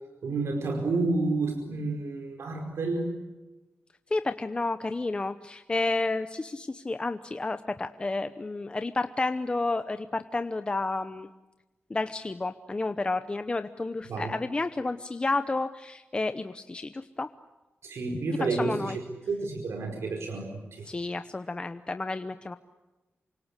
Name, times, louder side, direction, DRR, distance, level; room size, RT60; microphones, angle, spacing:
voice 1, 0.2-3.1 14.1-14.3 17.8-20.9, right 3 dB, 80° right, 2 dB, 4.8 m, -30 dB
voice 2, 4.1-11.3 11.9-17.3 18.5-19.0 20.9-22.6, left 3 dB, 20° left, 10 dB, 0.8 m, -31 dB
28.0 x 25.5 x 8.2 m, 1.1 s
wide cardioid pair, 160°, 4 cm